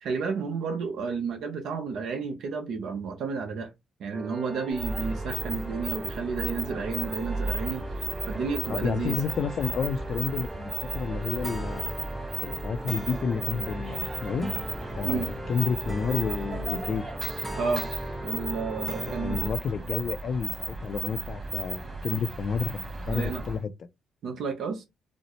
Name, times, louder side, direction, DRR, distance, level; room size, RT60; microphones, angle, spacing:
voice 1, 0.0-3.7 4.0-9.2 15.0-15.3 17.6-17.9 18.2-19.4 23.1-23.4 24.2-24.8, right 5 dB, 70° right, 0.7 m, -31 dB
sound 1, 4.1-19.5, right 1 dB, 5° right, 0.8 m, -39 dB
sound 2, 4.7-23.6, right 2 dB, 25° right, 1.4 m, -34 dB
voice 2, 8.7-12.0 12.4-14.5 15.0-17.0 19.2-23.7, left 6 dB, 55° left, 0.4 m, -31 dB
4.1 x 2.0 x 3.0 m
cardioid pair, 90°, 0 cm